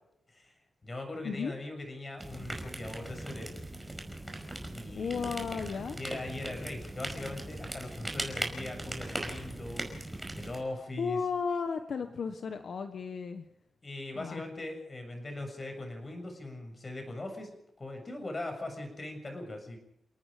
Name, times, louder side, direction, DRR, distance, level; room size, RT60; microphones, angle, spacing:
voice 1, 0.8-3.5 4.7-5.5 6.0-9.9 10.3-11.2 13.8-19.8, left 2 dB, 30° left, 4 dB, 7.3 m, -40 dB
sound 1, 2.2-10.6, right 1 dB, 5° right, 5.4 m, -39 dB
voice 2, 4.9-6.0 11.0-13.4 14.1-14.4, left 5 dB, 60° left, 7 dB, 1.4 m, -34 dB
30.0 x 18.5 x 5.2 m, 0.80 s
wide cardioid pair, 135°, 0 cm